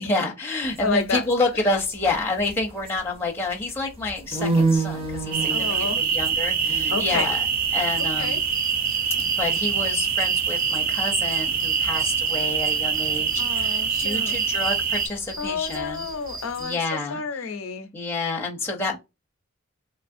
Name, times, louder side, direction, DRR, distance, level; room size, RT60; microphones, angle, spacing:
voice 1, 0.0-7.5 7.7-8.4 9.2-16.0 16.6-17.2 17.9-19.0, left 2 dB, 10° left, 0.5 m, -28 dB
sound 1, 0.6-3.2 3.5-8.9 9.2-9.6 9.8-9.9 10.2-12.8 13.0-16.6, right 3 dB, 25° right, 0.8 m, -29 dB
voice 2, 0.8-1.2 5.5-6.0 6.9-7.3 8.2-8.4 13.4-14.3 15.4-17.9, left 5 dB, 85° left, 0.5 m, -30 dB
sound 2, 5.3-15.1, right 7 dB, 45° right, 0.3 m, -24 dB
sound 3, 8.0-16.9, right 2 dB, 75° right, 0.9 m, -40 dB
3.0 x 2.4 x 2.5 m
head